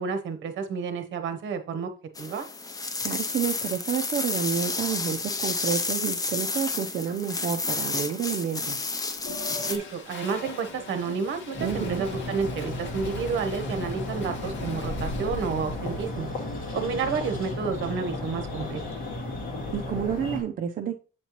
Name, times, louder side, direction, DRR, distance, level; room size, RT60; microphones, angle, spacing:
voice 1, 0.0-1.9 2.2-2.5 9.7-16.3 16.7-18.8, right 5 dB, 65° right, 7 dB, 1.0 m, -30 dB
sound 1, 2.2-9.8, left 3 dB, 15° left, 0.5 m, -30 dB
voice 2, 3.0-8.8 11.6-12.0 19.7-21.0, right 8 dB, 40° right, 3 dB, 0.5 m, -29 dB
Toilet flush, 9.2-16.4, left 3 dB, 65° left, 1.3 m, -42 dB
sound 2, 11.6-20.4, left 2 dB, 40° left, 1.9 m, -34 dB
8.0 x 4.3 x 2.9 m, 0.36 s
cardioid pair, 170°, 21 cm